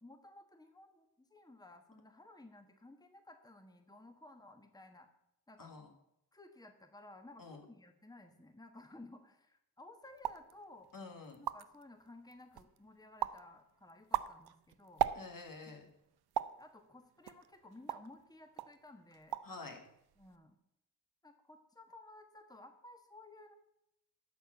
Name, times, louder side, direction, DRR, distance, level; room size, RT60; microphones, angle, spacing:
voice 1, 0.0-5.1 5.5-5.7 6.3-10.9 11.4-15.1 15.7-15.8 16.6-19.4 20.2-20.6 21.2-23.6, left 2 dB, 10° left, 6 dB, 1.3 m, -56 dB
voice 2, 5.6-5.9 7.4-7.6 10.9-11.4 15.1-15.9 19.4-19.8, left 3 dB, 60° left, 3 dB, 1.9 m, -48 dB
sound 1, 10.2-10.5 11.0-11.1 11.3-11.8 12.3-12.8 13.2-13.5 13.9-15.6 16.4-16.6 17.3-18.2 18.6-18.8 19.1-19.6 19.9-20.4, right 11 dB, 90° right, 0.5 m, -37 dB
12.5 x 4.5 x 7.7 m, 0.81 s
cardioid pair, 40°, 37 cm